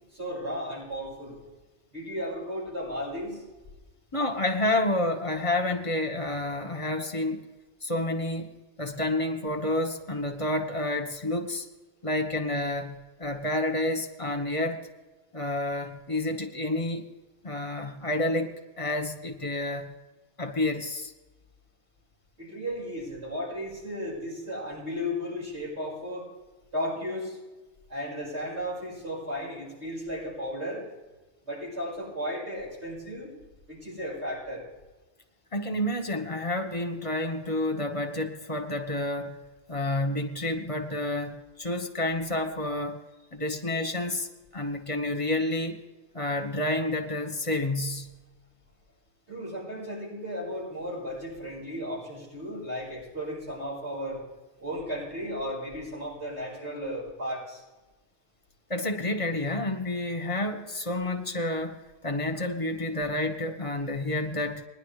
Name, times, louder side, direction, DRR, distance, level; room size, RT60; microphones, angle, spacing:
voice 1, 0.1-1.4 1.9-3.4 22.4-26.3 26.7-27.4 27.9-30.8 31.5-33.3 33.7-34.6 49.3-54.2 54.6-57.6, equal, 70° right, -7 dB, 5.7 m, -35 dB
voice 2, 4.1-7.5 7.8-8.5 8.8-11.7 12.0-14.9 15.3-17.1 17.4-19.9 20.4-21.1 35.5-39.4 39.7-43.0 43.3-45.8 46.1-48.1 58.7-64.7, left 1 dB, 30° left, 3 dB, 1.2 m, -29 dB
20.0 x 11.0 x 3.3 m, 1.2 s
omnidirectional pair, 1.2 m